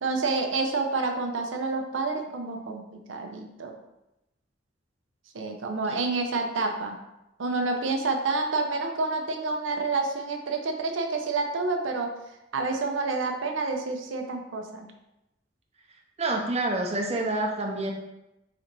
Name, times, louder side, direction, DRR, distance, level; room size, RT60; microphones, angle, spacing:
voice 1, 0.0-3.7 5.3-7.0 7.4-12.1 12.5-14.9, right 3 dB, 80° right, 3 dB, 0.5 m, -28 dB
voice 2, 16.2-17.9, right 2 dB, 35° right, 1 dB, 0.6 m, -27 dB
4.2 x 2.6 x 4.3 m, 0.91 s
head